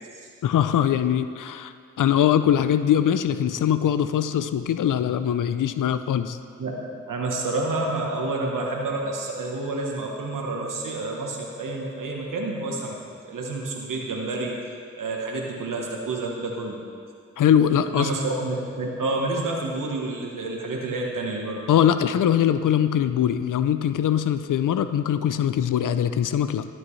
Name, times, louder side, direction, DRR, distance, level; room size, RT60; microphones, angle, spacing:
voice 1, 0.4-6.4 17.4-18.1 21.7-26.6, left 9 dB, 75° left, 11 dB, 0.5 m, -22 dB
voice 2, 7.1-13.0 13.2-14.6 15.0-16.8 17.9-21.6, right 2 dB, 75° right, -1 dB, 1.1 m, -29 dB
12.0 x 7.6 x 3.2 m, 2.3 s
cardioid pair, 40°, 32 cm